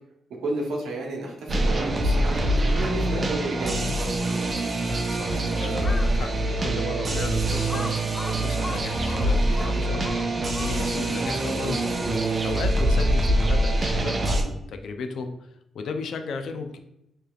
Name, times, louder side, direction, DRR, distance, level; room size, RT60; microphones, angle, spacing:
voice 1, 0.4-3.8, right 2 dB, 85° right, 0 dB, 0.9 m, -31 dB
sound 1, 1.5-14.4, right 1 dB, 40° right, 0.6 m, -24 dB
voice 2, 5.1-10.2 10.6-11.9 12.4-16.8, left 4 dB, 75° left, 6 dB, 0.5 m, -35 dB
Crow, 5.8-6.2 6.8-6.9 7.7-11.1, left 2 dB, 20° left, 0.3 m, -38 dB
4.8 x 3.2 x 2.3 m, 0.82 s
cardioid pair, 85°, 0 cm